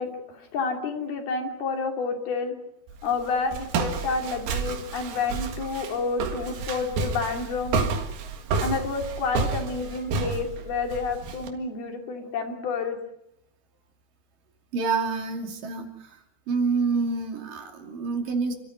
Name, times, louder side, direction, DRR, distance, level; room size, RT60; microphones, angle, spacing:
voice 1, 0.0-2.5 3.0-7.8 8.6-13.0, left 4 dB, 80° left, 3 dB, 4.9 m, -29 dB
Walk footsteps, 2.9-11.5, right 5 dB, 85° right, 3.8 m, -30 dB
voice 2, 14.7-16.2 16.5-18.5, right 4 dB, 65° right, 4 dB, 4.2 m, -27 dB
28.5 x 13.5 x 9.6 m, 0.83 s
omnidirectional pair, 4.3 m